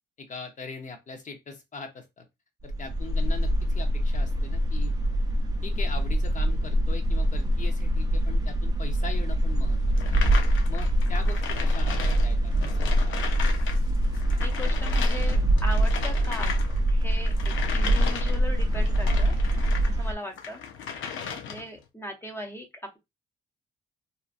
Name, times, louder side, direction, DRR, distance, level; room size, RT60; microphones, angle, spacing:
voice 1, 0.2-2.3 2.6-4.9 5.6-9.8 10.0-10.2 10.7-13.2, left 4 dB, 40° left, 0.8 m, -41 dB
sound 1, 2.6-20.1, right 1 dB, 20° right, 0.5 m, -24 dB
sound 2, 10.0-13.8 14.0-19.9 20.3-21.8, left 7 dB, 75° left, 0.6 m, -36 dB
voice 2, 13.9-16.5 16.9-20.6 21.0-21.2 21.5-23.0, left 1 dB, 10° left, 0.8 m, -39 dB
2.8 x 2.4 x 2.5 m
cardioid pair, 90°, 20 cm